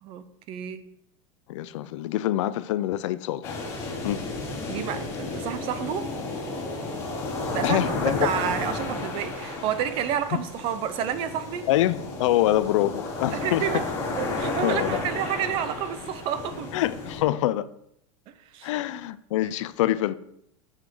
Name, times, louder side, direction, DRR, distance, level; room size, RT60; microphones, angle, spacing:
voice 1, 0.0-0.8 4.7-6.1 7.5-11.7 13.3-13.9 14.2-16.7 18.3-18.8, right 9 dB, 30° right, 0.7 m, -30 dB
voice 2, 1.5-3.6 4.0-4.2 7.6-8.2 11.7-13.8 14.6-15.0 16.7-17.7 18.6-20.1, left 14 dB, 60° left, 0.6 m, -25 dB
sound 1, 3.4-17.2, left 2 dB, 20° left, 3.5 m, -32 dB
9.8 x 7.4 x 4.5 m
supercardioid pair, 170°, 18 cm